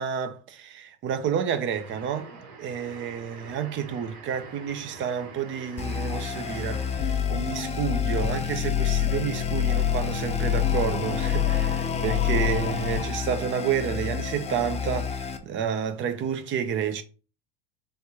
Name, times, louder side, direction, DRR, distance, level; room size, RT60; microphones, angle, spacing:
voice 1, 0.0-2.3 2.6-17.0, right 8 dB, 40° right, 0.8 m, -30 dB
sound 1, 1.7-7.2, right 4 dB, 60° right, 1.6 m, -45 dB
sound 2, 5.8-15.4, left 9 dB, 20° left, 0.7 m, -27 dB
3.5 x 3.4 x 4.3 m
supercardioid pair, 115°, 30 cm